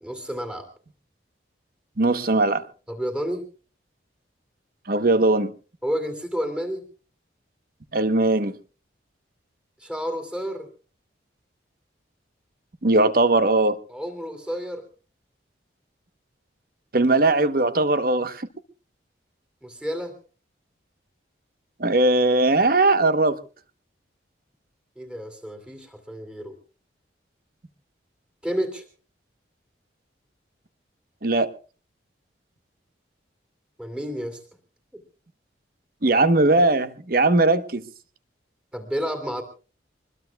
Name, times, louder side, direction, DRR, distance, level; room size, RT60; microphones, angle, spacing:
voice 1, 0.0-0.7 2.9-3.4 5.8-6.8 9.8-10.7 13.9-14.8 19.6-20.1 25.0-26.5 28.4-28.8 33.8-34.4 34.9-35.0 38.7-39.4, equal, 5° right, 2.6 m, -30 dB
voice 2, 2.0-2.6 4.9-5.5 7.9-8.5 12.8-13.8 16.9-18.5 21.8-23.4 31.2-31.5 36.0-37.8, right 2 dB, 50° right, 1.0 m, -19 dB
25.0 x 21.0 x 2.3 m
head